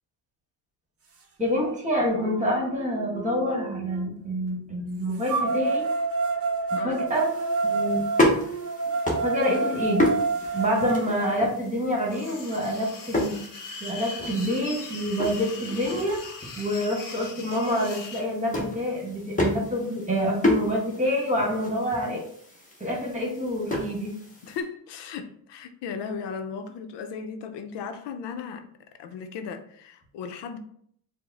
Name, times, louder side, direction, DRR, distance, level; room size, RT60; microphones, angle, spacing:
voice 1, 1.4-5.8 6.7-7.2 7.6-8.0 9.2-10.1 10.5-13.4 13.8-22.2 22.8-24.1, equal, 20° right, 1.3 m, -27 dB
sound 1, 1.5-1.6 2.1-4.0 5.3-11.3, right 4 dB, 35° right, 0.7 m, -28 dB
sound 2, 7.1-24.6, left 1 dB, 20° left, 1.1 m, -31 dB
sound 3, 12.1-18.2, left 4 dB, 50° left, 0.8 m, -40 dB
voice 2, 24.4-28.7 29.0-30.6, left 6 dB, 85° left, 0.6 m, -36 dB
4.6 x 2.1 x 4.0 m
cardioid pair, 135°, 40 cm